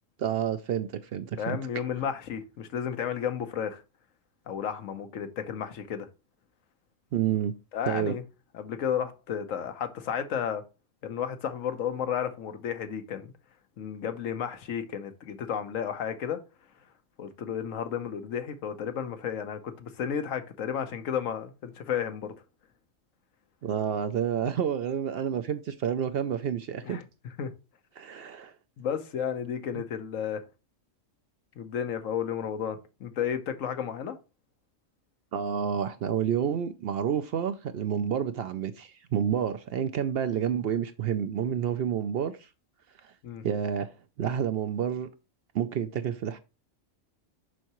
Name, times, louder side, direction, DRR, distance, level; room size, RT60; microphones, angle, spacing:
voice 1, 0.2-1.6 7.1-7.5 7.9-8.1 23.6-27.0 28.0-28.5 29.7-29.8 35.3-42.5 43.0-43.1 43.4-43.9 44.2-45.1 45.5-46.4, right 8 dB, 65° right, 0.6 m, -29 dB
voice 2, 1.4-3.8 4.5-6.1 7.7-8.2 8.5-10.6 11.0-13.3 13.8-16.4 17.2-22.3 26.8-27.0 27.4-27.5 28.8-30.4 31.6-34.2 43.2-43.4, left 8 dB, 85° left, 1.2 m, -32 dB
6.3 x 5.6 x 3.0 m
omnidirectional pair, 1.3 m